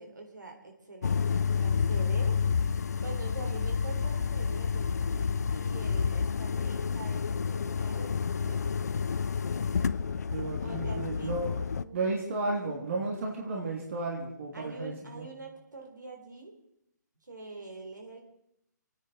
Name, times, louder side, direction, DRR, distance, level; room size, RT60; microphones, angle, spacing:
voice 1, 0.0-2.4 3.0-8.6 10.6-11.3 11.8-12.2 14.5-16.5 17.2-18.2, right 3 dB, 75° right, 1 dB, 3.8 m, -44 dB
sound 1, 1.0-11.8, left 6 dB, 60° left, 0.6 m, -29 dB
voice 2, 10.3-11.6 11.9-15.3, right 3 dB, 45° right, -1 dB, 2.9 m, -33 dB
29.0 x 9.7 x 4.2 m, 0.79 s
figure-of-eight pair, 135°, 10 cm